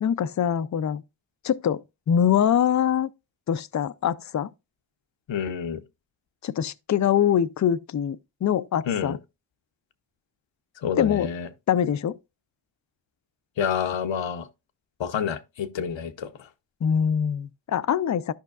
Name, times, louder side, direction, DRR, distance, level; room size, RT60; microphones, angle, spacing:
voice 1, 0.0-1.0 1.4-3.1 3.5-4.5 6.4-9.2 11.0-11.3 11.7-12.2 16.8-18.3, left 9 dB, 40° left, 0.4 m, -24 dB
voice 2, 5.3-5.8 8.9-9.2 10.8-11.5 13.6-14.5 15.0-16.5, left 7 dB, 80° left, 0.8 m, -28 dB
13.0 x 5.5 x 2.4 m
wide cardioid pair, 90°, 45 cm